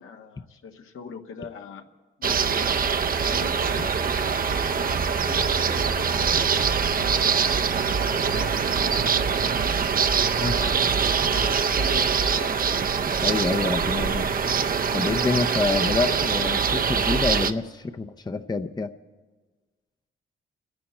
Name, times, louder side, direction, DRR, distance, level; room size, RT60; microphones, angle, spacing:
voice 1, 0.0-1.9 2.2-6.4 6.9-9.6 10.3-13.0, left 6 dB, 75° left, 4 dB, 1.3 m, -42 dB
sound 1, 2.2-17.5, right 6 dB, 45° right, 0.6 m, -23 dB
voice 2, 13.2-14.3 14.9-18.9, left 3 dB, 20° left, 8 dB, 0.6 m, -27 dB
27.5 x 10.5 x 4.3 m, 1.3 s
cardioid pair, 70°, 21 cm